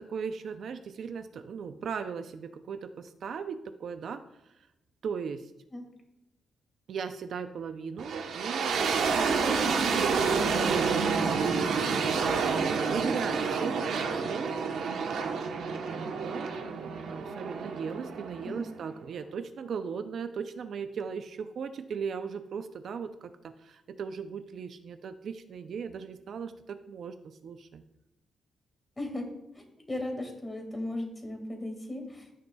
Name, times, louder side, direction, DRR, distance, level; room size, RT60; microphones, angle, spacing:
voice 1, 0.0-4.7 5.0-5.5 6.9-11.9 12.1-14.6 15.5-27.8, right 6 dB, 60° right, 9 dB, 0.5 m, -38 dB
sound 1, 8.0-18.9, right 5 dB, 80° right, 1.0 m, -29 dB
voice 2, 29.6-32.3, left 1 dB, 15° left, 2 dB, 2.0 m, -36 dB
15.0 x 6.6 x 2.3 m, 0.92 s
cardioid pair, 135°, 0 cm